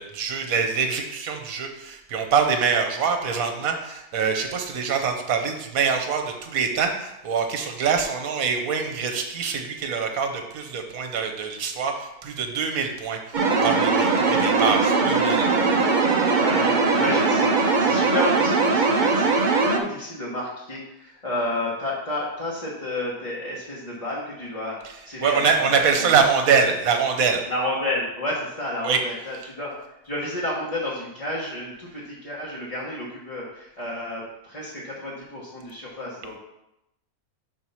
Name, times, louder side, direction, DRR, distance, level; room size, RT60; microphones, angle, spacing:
voice 1, 0.0-13.2 13.5-15.5 25.2-27.5 28.8-29.0, right 6 dB, 70° right, 5 dB, 1.3 m, -24 dB
sound 1, 13.3-19.8, right 4 dB, 45° right, 0.6 m, -20 dB
voice 2, 16.3-19.3 19.6-26.2 27.5-29.7 30.0-36.4, left 1 dB, 25° left, -7 dB, 1.2 m, -31 dB
5.5 x 4.6 x 5.6 m, 0.87 s
omnidirectional pair, 1.6 m